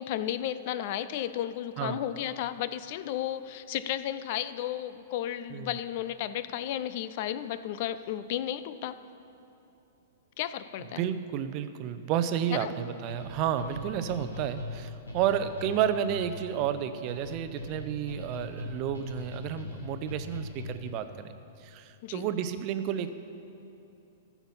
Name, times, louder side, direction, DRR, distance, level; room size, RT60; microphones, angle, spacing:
voice 1, 0.0-8.9 10.4-11.0 12.5-12.7 22.0-22.2, left 11 dB, 50° left, 13 dB, 0.4 m, -33 dB
voice 2, 11.0-21.3 21.6-23.1, right 9 dB, 40° right, 11 dB, 0.6 m, -31 dB
sound 1, 13.1-21.0, left 2 dB, 85° left, 2.2 m, -40 dB
14.0 x 7.1 x 5.6 m, 2.8 s
figure-of-eight pair, 105°, 0 cm